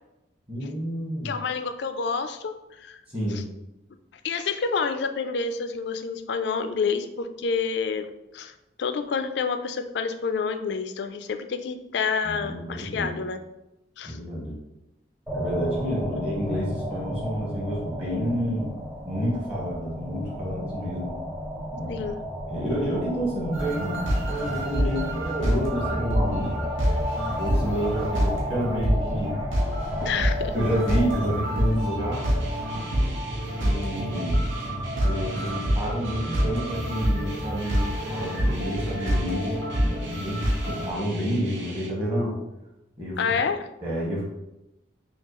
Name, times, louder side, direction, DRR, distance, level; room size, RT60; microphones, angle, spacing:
voice 1, 0.5-1.3 3.1-3.4 12.2-13.2 14.0-14.6 15.3-18.7 19.0-21.2 21.7-22.0 22.5-26.7 27.3-29.4 30.5-32.3 33.6-34.4 35.0-42.4 43.0-43.4 43.8-44.2, equal, 30° right, -5 dB, 1.2 m, -29 dB
voice 2, 1.2-3.0 3.3-3.4 4.2-8.1 8.3-8.5 8.8-13.4 14.0-14.2 21.9-22.2 30.0-30.5 43.2-43.6, left 5 dB, 60° left, 9 dB, 0.3 m, -28 dB
sound 1, 15.3-31.3, equal, 10° right, 0.6 m, -33 dB
sound 2, 23.5-40.9, equal, 85° right, 1.0 m, -27 dB
sound 3, 32.1-41.9, right 2 dB, 65° right, 0.7 m, -41 dB
5.3 x 2.3 x 3.0 m, 0.94 s
head